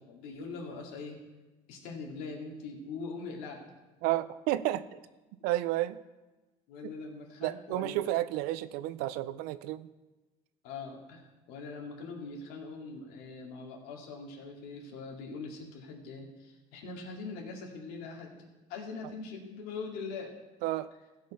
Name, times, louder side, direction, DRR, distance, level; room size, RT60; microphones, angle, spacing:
voice 1, 0.1-1.2 1.7-3.6 6.7-7.9 10.6-18.4 18.7-20.3, left 4 dB, 75° left, 1 dB, 2.3 m, -42 dB
voice 2, 4.0-5.0 5.4-6.0 7.4-9.9 20.6-20.9, right 15 dB, 75° right, 16 dB, 0.5 m, -31 dB
15.5 x 5.4 x 5.6 m, 1.2 s
supercardioid pair, 110°, 16 cm